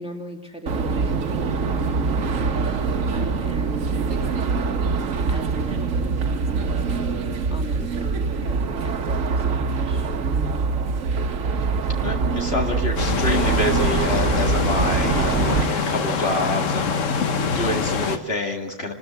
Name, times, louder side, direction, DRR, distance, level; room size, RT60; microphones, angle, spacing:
voice 1, 0.0-2.7 3.1-4.9 5.3-8.6 8.8-10.1, left 1 dB, 5° right, 2 dB, 2.1 m, -39 dB
sound 1, 0.7-15.7, right 4 dB, 90° right, 1.4 m, -24 dB
voice 2, 12.0-18.9, left 1 dB, 50° left, 2 dB, 2.4 m, -27 dB
sound 2, 13.0-18.2, left 5 dB, 75° left, 1.4 m, -24 dB
29.0 x 14.0 x 9.2 m, 1.3 s
omnidirectional pair, 1.3 m